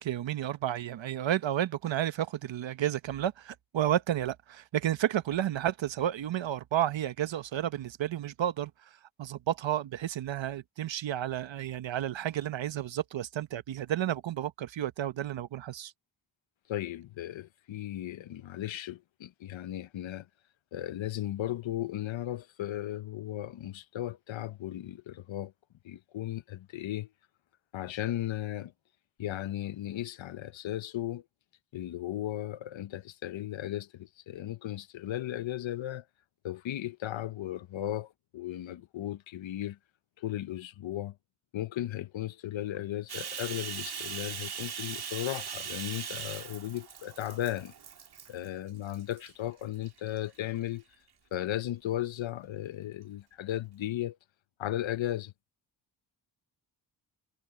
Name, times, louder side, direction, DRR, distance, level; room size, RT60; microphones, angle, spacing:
voice 1, 0.0-8.9 9.2-15.9, right 11 dB, 80° right, 0.9 m, -31 dB
voice 2, 16.7-20.3 20.7-25.5 25.8-27.1 27.7-28.7 29.2-31.2 31.7-36.0 36.4-39.8 40.2-41.1 41.5-47.7 48.3-50.8 51.3-54.2 54.6-55.3, left 13 dB, 85° left, 0.8 m, -36 dB
Bathtub (filling or washing), 43.1-48.5 48.9-49.3 49.8-50.7, right 7 dB, 55° right, 1.9 m, -40 dB
wide cardioid pair, 145°, 45 cm